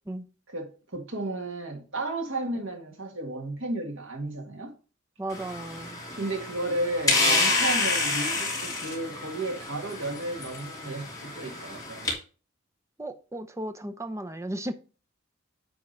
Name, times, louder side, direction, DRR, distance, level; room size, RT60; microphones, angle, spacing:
voice 1, 0.5-4.7 6.2-12.1, right 2 dB, 70° right, 2.1 m, -33 dB
voice 2, 5.2-6.0 13.0-14.7, right 1 dB, 15° right, 0.6 m, -35 dB
sound 1, 5.3-12.1, left 3 dB, 20° left, 3.0 m, -29 dB
9.6 x 3.6 x 5.4 m
head